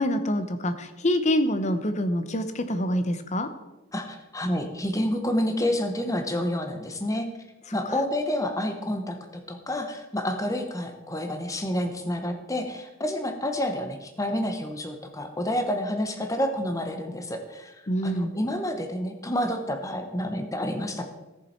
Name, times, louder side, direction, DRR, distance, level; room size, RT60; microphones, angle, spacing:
voice 1, 0.0-3.5 17.9-18.3, left 1 dB, 35° left, 10 dB, 0.8 m, -26 dB
voice 2, 3.9-7.3 7.7-17.7 18.0-21.0, left 1 dB, 15° left, 5 dB, 1.0 m, -29 dB
14.0 x 7.0 x 4.4 m, 1.1 s
head